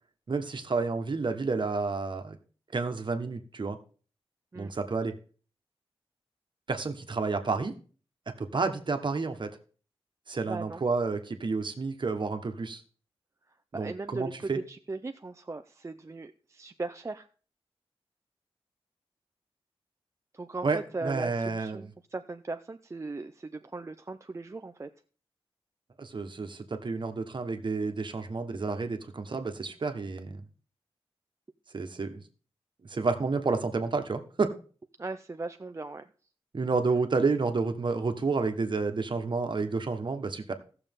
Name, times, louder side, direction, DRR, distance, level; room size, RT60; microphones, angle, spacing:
voice 1, 0.3-2.4 2.7-3.8 4.5-5.1 6.7-7.7 8.4-9.6 10.3-12.8 13.7-14.6 20.6-21.9 26.0-30.4 31.7-32.2 32.8-34.5 36.5-40.5, right 4 dB, 55° right, 7 dB, 1.3 m, -30 dB
voice 2, 10.5-10.8 13.7-17.3 20.3-24.9 35.0-36.0, right 3 dB, 30° right, 8 dB, 0.5 m, -38 dB
17.5 x 6.8 x 3.6 m, 0.40 s
wide cardioid pair, 105°, 10 cm